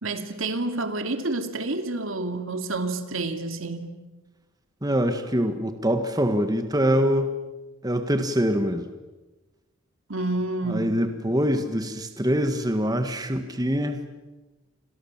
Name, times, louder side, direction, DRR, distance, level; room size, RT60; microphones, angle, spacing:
voice 1, 0.0-4.0 10.1-11.0, right 2 dB, 65° right, 7 dB, 2.5 m, -29 dB
voice 2, 4.8-7.4 7.8-8.9 10.7-14.1, equal, 15° right, 7 dB, 1.6 m, -24 dB
30.0 x 26.0 x 7.3 m, 1.1 s
head